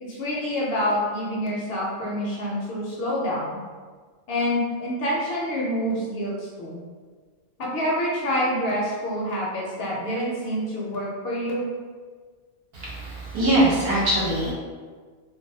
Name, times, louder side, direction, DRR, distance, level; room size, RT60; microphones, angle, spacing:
voice 1, 0.0-3.6 4.3-6.8 7.6-11.7, equal, 65° left, -4 dB, 0.7 m, -27 dB
voice 2, 12.7-14.5, right 1 dB, 60° right, -6 dB, 0.9 m, -22 dB
2.4 x 2.3 x 2.6 m, 1.5 s
omnidirectional pair, 1.2 m